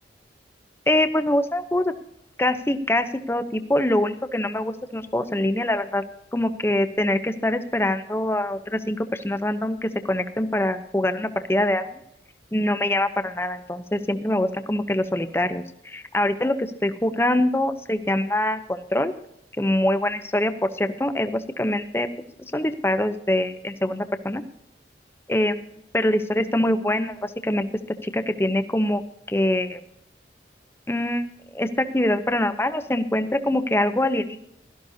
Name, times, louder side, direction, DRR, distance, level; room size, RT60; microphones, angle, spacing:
voice 1, 0.9-1.9 2.4-12.0 12.5-16.6 16.8-19.1 19.6-22.1 22.5-24.4 25.3-25.5 25.9-27.7 28.0-29.0 29.3-29.8 30.9-31.2 31.5-34.4, left 1 dB, 15° left, 9 dB, 0.8 m, -24 dB
16.5 x 13.0 x 2.8 m, 0.75 s
head